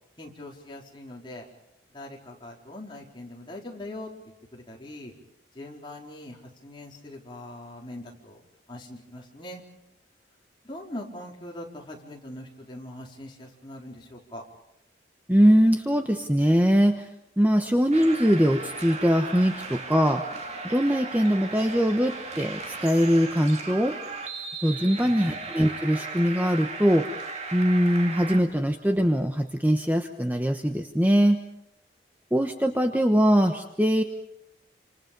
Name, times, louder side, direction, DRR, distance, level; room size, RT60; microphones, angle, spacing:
voice 1, 0.2-1.5 1.9-4.1 4.5-5.1 5.5-8.4 8.7-9.6 10.6-14.4 25.0-25.4, left 1 dB, 25° left, -1 dB, 4.4 m, -41 dB
voice 2, 15.3-17.1 17.4-20.2 20.6-24.0 24.6-27.1 27.5-31.4 32.3-34.0, equal, 10° right, 5 dB, 1.0 m, -22 dB
sound 1, 17.9-28.4, right 3 dB, 35° right, 2.7 m, -37 dB
28.0 x 27.0 x 5.4 m, 0.83 s
head